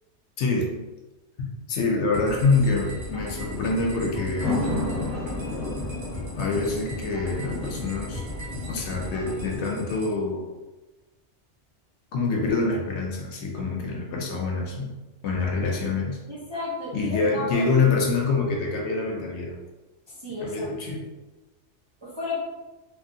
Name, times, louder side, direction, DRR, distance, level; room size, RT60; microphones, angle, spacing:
voice 1, 0.4-0.7 1.4-4.6 6.4-8.4 8.7-10.5 12.1-14.9 15.2-16.2 16.9-19.6 20.4-21.0, left 3 dB, 70° left, 0 dB, 0.8 m, -26 dB
sound 1, 2.1-9.6, left 2 dB, 10° right, 1.2 m, -33 dB
sound 2, 2.1-10.1, left 1 dB, 65° right, 1.2 m, -38 dB
voice 2, 16.3-17.6 20.1-20.7 22.0-22.4, left 3 dB, 30° right, -8 dB, 0.5 m, -33 dB
2.9 x 2.6 x 2.6 m, 1.1 s
omnidirectional pair, 1.3 m